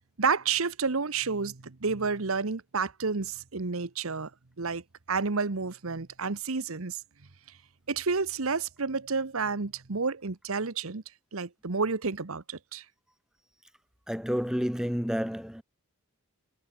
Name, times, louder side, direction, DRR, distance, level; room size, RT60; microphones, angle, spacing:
voice 1, 0.2-4.3 4.6-4.8 5.1-7.0 7.9-11.0 11.3-12.8, right 4 dB, 75° right, 1.1 m, -30 dB
voice 2, 14.1-15.6, equal, 5° right, 1.5 m, -30 dB
head